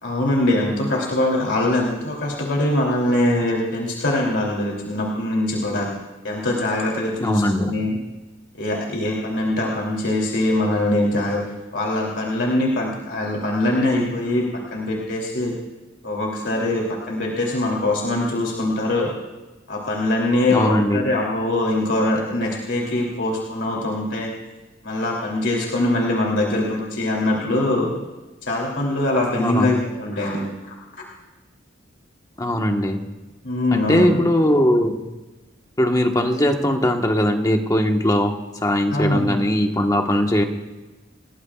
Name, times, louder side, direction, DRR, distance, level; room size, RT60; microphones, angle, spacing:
voice 1, 0.0-5.9 6.2-8.0 8.5-11.4 11.7-15.5 16.0-19.1 19.7-24.3 24.8-27.9 28.4-30.5 33.4-34.2 38.9-39.4, left 1 dB, 70° left, -2 dB, 3.0 m, -22 dB
voice 2, 7.2-7.7 20.5-21.1 29.4-29.7 32.4-33.0 33.7-35.0 35.8-38.3 38.6-40.4, left 1 dB, 20° left, 3 dB, 1.3 m, -20 dB
28.5 x 18.5 x 2.4 m, 1.1 s
head